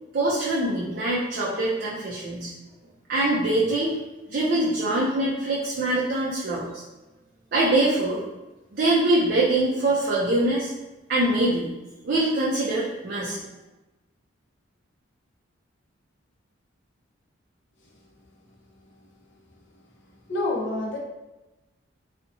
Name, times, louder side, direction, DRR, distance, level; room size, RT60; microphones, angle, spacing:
voice 1, 0.1-2.5 3.1-3.9 4.3-6.8 7.5-8.2 8.7-10.7 11.1-11.7 12.0-13.4, right 2 dB, 50° right, -6 dB, 0.4 m, -23 dB
voice 2, 20.3-21.0, left 2 dB, 60° left, -3 dB, 0.6 m, -27 dB
2.7 x 2.1 x 2.6 m, 1.0 s
head